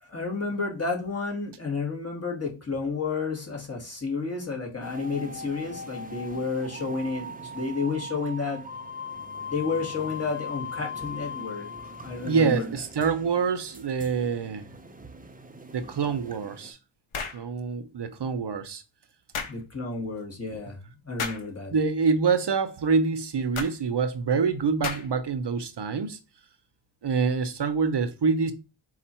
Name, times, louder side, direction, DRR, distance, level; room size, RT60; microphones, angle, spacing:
voice 1, 0.0-8.6 9.5-11.7 12.0-12.7 19.5-21.8, left 4 dB, 30° left, 1.5 m, -31 dB
sound 1, 4.8-16.7, left 3 dB, 20° right, 0.5 m, -40 dB
voice 2, 12.2-14.6 15.7-16.8 17.3-18.8 21.7-26.2 27.0-28.5, right 5 dB, 55° right, 0.7 m, -26 dB
sound 2, 17.1-17.4 19.3-19.6 21.2-21.5 23.5-23.8 24.8-25.2, left 5 dB, 90° left, 0.8 m, -33 dB
4.4 x 2.4 x 4.2 m
wide cardioid pair, 70°, 48 cm